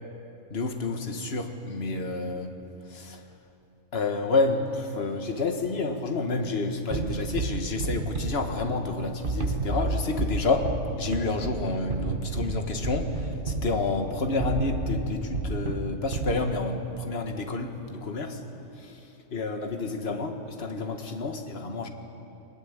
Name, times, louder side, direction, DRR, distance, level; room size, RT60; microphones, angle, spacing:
voice 1, 0.5-2.6 2.9-3.2 3.9-18.4 18.8-19.0 19.3-21.9, left 3 dB, 50° left, 5 dB, 1.8 m, -29 dB
sound 1, 6.9-16.8, right 3 dB, 40° right, 1.3 m, -31 dB
22.0 x 21.0 x 8.9 m, 2.8 s
omnidirectional pair, 1.4 m